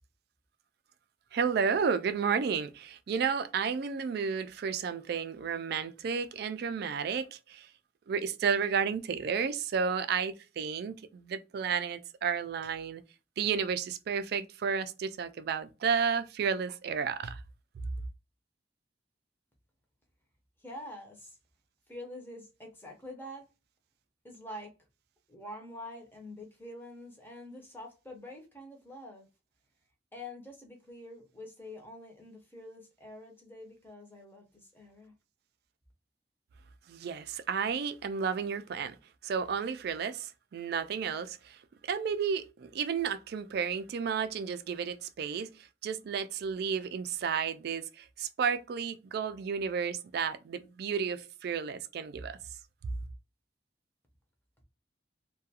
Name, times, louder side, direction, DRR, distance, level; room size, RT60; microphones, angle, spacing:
voice 1, 1.3-7.7 8.1-13.0 13.4-17.4 36.9-39.0 39.2-41.6 41.9-45.5 45.8-52.4, right 6 dB, 60° right, 0.3 m, -32 dB
voice 2, 20.6-21.4 21.9-23.5 24.2-24.7 25.3-29.3 30.1-35.1, left 1 dB, 10° left, 0.6 m, -46 dB
2.4 x 2.2 x 2.7 m
head